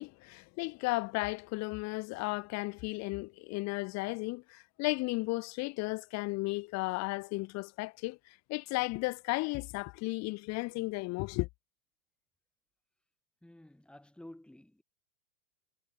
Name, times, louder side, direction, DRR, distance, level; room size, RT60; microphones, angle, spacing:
voice 1, 0.0-11.5, left 23 dB, 35° left, 2.6 m, -34 dB
voice 2, 13.4-14.8, left 1 dB, ahead, 5.5 m, -52 dB
hypercardioid pair, 115°, 46 cm